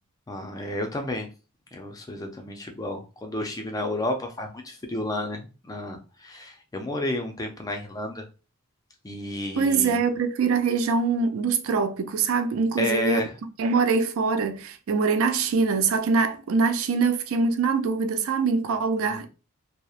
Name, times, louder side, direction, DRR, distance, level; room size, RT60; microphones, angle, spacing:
voice 1, 0.3-1.3 1.7-8.2 9.0-10.0 12.8-13.3, left 1 dB, 15° left, 0.3 m, -31 dB
voice 2, 9.6-13.2 13.6-19.3, right 4 dB, 70° right, 0.3 m, -23 dB
2.8 x 2.0 x 2.3 m
head